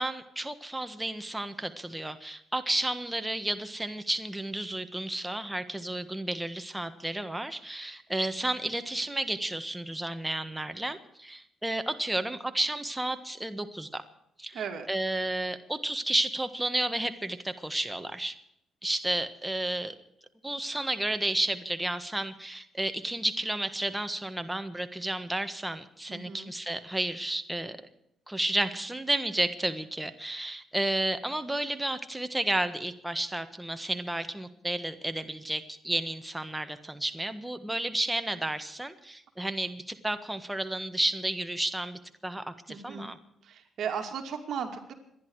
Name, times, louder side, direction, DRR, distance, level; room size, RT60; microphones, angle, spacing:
voice 1, 0.0-14.0 14.4-18.3 18.8-19.9 20.4-27.8 28.3-43.2, right 1 dB, 10° right, 9 dB, 1.5 m, -32 dB
voice 2, 14.5-14.9 26.1-26.5 42.7-43.1 43.4-44.9, right 7 dB, 65° right, 4 dB, 2.6 m, -36 dB
26.5 x 11.0 x 4.8 m, 0.77 s
cardioid pair, 90°, 0 cm